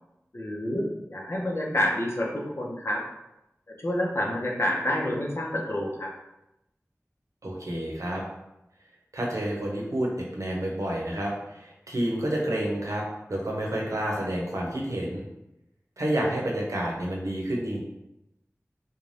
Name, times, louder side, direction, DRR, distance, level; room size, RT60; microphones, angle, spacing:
voice 1, 0.3-3.0 3.8-6.1, left 1 dB, 55° left, -2 dB, 0.6 m, -28 dB
voice 2, 7.4-8.2 9.1-13.0 13.3-15.2 16.0-17.8, right 1 dB, 85° right, -2 dB, 0.7 m, -29 dB
2.5 x 2.2 x 3.1 m, 0.90 s
wide cardioid pair, 50°, 5 cm